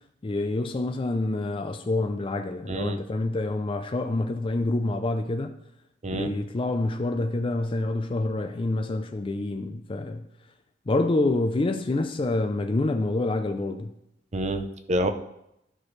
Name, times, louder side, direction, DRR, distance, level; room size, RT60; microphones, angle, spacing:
voice 1, 0.2-5.5 6.1-10.3 10.9-13.9, left 2 dB, 30° left, 6 dB, 0.4 m, -27 dB
voice 2, 2.7-3.0 6.0-6.3 14.3-15.1, right 1 dB, 35° right, 8 dB, 0.6 m, -27 dB
12.0 x 6.0 x 3.2 m, 0.82 s
head